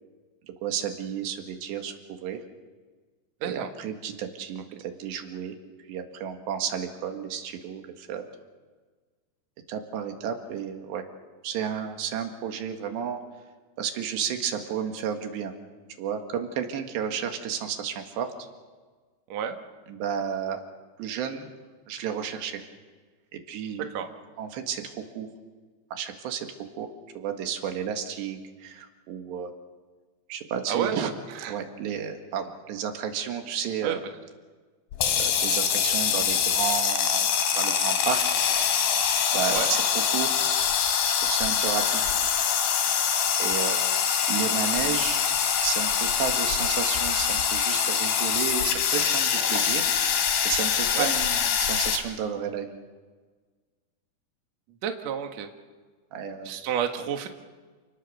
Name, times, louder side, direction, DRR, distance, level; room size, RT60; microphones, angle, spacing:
voice 1, 0.6-2.4 3.4-5.6 5.9-8.3 9.7-11.0 11.4-13.2 13.8-15.5 16.0-18.5 19.9-20.6 21.0-21.5 21.9-22.6 23.3-23.9 24.4-25.3 25.9-26.5 26.8-26.9 27.2-29.5 30.3-31.1 31.5-34.0 35.2-38.2 39.3-40.3 41.1-42.1 43.4-45.2 45.6-52.8 56.1-56.6, right 8 dB, 85° right, 5 dB, 4.0 m, -32 dB
sound 1, 34.9-52.0, left 8 dB, 75° left, 4.1 m, -24 dB
voice 2, 54.8-55.5 56.5-57.3, right 8 dB, 55° right, 5 dB, 2.2 m, -29 dB
28.5 x 19.0 x 6.9 m, 1.4 s
omnidirectional pair, 4.9 m